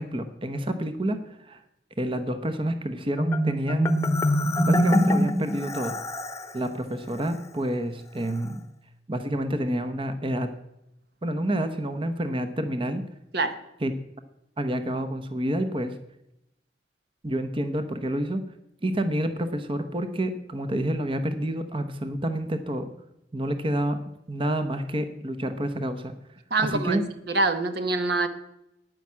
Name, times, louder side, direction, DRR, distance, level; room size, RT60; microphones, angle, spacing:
voice 1, 0.0-1.6 2.0-3.9 4.6-6.0 6.5-8.6 9.1-10.5 11.2-13.0 13.8-13.9 14.6-15.9 17.2-18.4 18.8-22.9 23.3-24.0 24.3-26.1 26.6-27.0, right 1 dB, 30° right, 9 dB, 0.9 m, -28 dB
Marimba xylophone, 3.2-6.5, equal, 15° left, 0.9 m, -24 dB
voice 2, 26.5-27.0 27.3-28.3, right 3 dB, 65° right, 9 dB, 1.1 m, -25 dB
10.0 x 9.5 x 7.4 m, 0.85 s
head